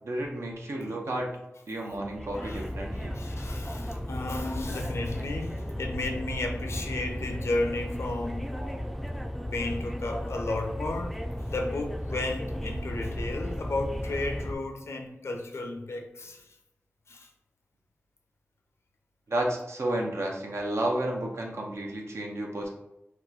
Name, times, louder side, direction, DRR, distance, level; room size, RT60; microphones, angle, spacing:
voice 1, 0.0-1.3 1.7-3.2 4.7-4.9 5.5-5.6 8.1-8.2 8.5-8.8 19.3-22.7, right 1 dB, 80° right, 0.7 m, -32 dB
sound 1, 1.9-14.6, equal, ahead, 0.3 m, -35 dB
voice 2, 3.1-8.5 9.3-11.2 11.5-16.4 17.1-17.3, left 2 dB, 80° left, 0.5 m, -33 dB
2.9 x 2.2 x 3.8 m
wide cardioid pair, 55°, 5 cm